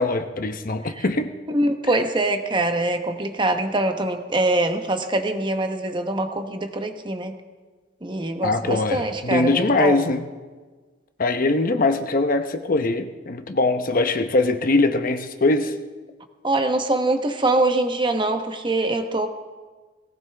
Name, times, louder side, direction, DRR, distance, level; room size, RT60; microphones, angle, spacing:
voice 1, 0.0-1.3 8.4-10.2 11.2-15.7, left 2 dB, 45° left, 8 dB, 0.8 m, -22 dB
voice 2, 1.5-7.3 8.0-10.0 16.4-19.3, right 2 dB, 25° right, 7 dB, 1.0 m, -23 dB
18.5 x 17.5 x 3.4 m, 1.3 s
head